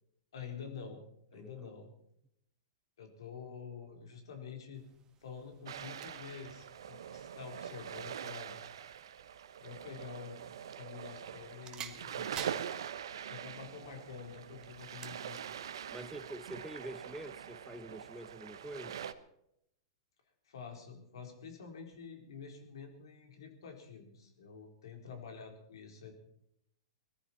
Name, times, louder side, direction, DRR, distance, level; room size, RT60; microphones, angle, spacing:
voice 1, 0.3-1.0 1.3-1.9 3.0-4.8 5.2-8.6 9.6-10.4 10.8-12.6 13.3-15.5 20.5-26.1, left 6 dB, 75° left, 4.2 m, -48 dB
voice 2, 1.3-1.7 15.9-19.0, right 1 dB, 5° right, 1.0 m, -46 dB
sound 1, 4.7-17.2, right 9 dB, 25° right, 1.5 m, -54 dB
sound 2, 5.7-19.1, right 9 dB, 75° right, 1.0 m, -44 dB
20.5 x 14.0 x 4.5 m
hypercardioid pair, 120°, 3 cm